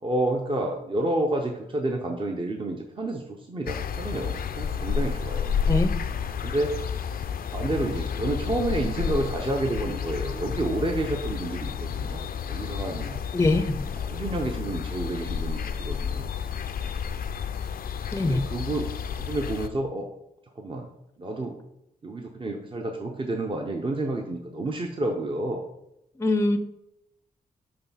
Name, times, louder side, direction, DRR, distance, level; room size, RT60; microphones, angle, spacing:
voice 1, 0.0-5.5 6.4-6.7 7.5-13.2 14.1-16.2 18.2-18.9 19.2-20.0 20.6-20.9 21.2-21.6 22.0-25.6, right 2 dB, 30° right, 2 dB, 0.8 m, -29 dB
sound 1, 3.7-19.7, left 7 dB, 65° left, 0.5 m, -31 dB
voice 2, 13.3-13.8 18.1-18.4 26.2-26.6, left 2 dB, 15° left, 9 dB, 0.5 m, -22 dB
6.8 x 3.4 x 5.7 m, 0.82 s
wide cardioid pair, 110°, 16 cm